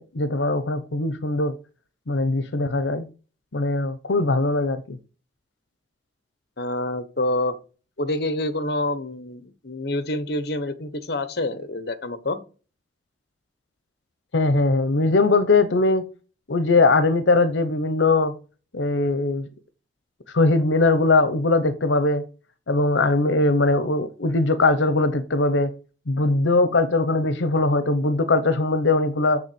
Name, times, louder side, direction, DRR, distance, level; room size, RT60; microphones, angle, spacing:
voice 1, 0.0-1.5 2.1-3.0 3.5-5.0 14.3-16.0 16.5-18.3 18.7-19.5 20.3-22.2 22.7-25.7 26.1-29.4, left 2 dB, 80° left, 11 dB, 0.9 m, -20 dB
voice 2, 6.6-7.5 8.0-12.4, left 1 dB, 55° left, 12 dB, 1.1 m, -27 dB
7.0 x 7.0 x 6.9 m, 0.36 s
head